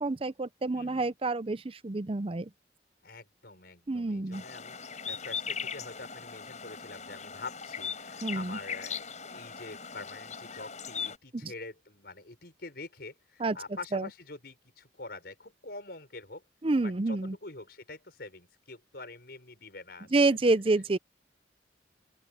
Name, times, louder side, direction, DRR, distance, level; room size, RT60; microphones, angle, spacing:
voice 1, 0.0-2.5 3.9-4.4 8.2-8.6 11.3-11.5 13.4-13.6 13.9-14.1 16.6-17.4 20.1-21.0, right 2 dB, 30° right, 0.6 m, -28 dB
voice 2, 0.7-1.1 3.0-16.4 16.8-20.4, left 3 dB, 60° left, 6.2 m, -46 dB
sound 1, 4.3-11.2, left 6 dB, 40° left, 7.9 m, -39 dB
open air
head